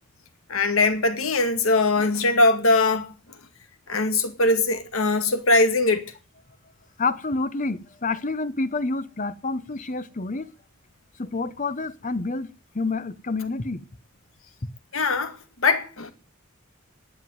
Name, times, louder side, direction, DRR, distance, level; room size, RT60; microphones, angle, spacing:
voice 1, 0.5-3.1 3.9-6.1 14.9-16.1, left 2 dB, 80° left, 2.1 m, -21 dB
voice 2, 7.0-10.5 11.2-12.5 12.7-13.8, left 3 dB, 35° left, 0.8 m, -28 dB
10.5 x 9.6 x 9.3 m
head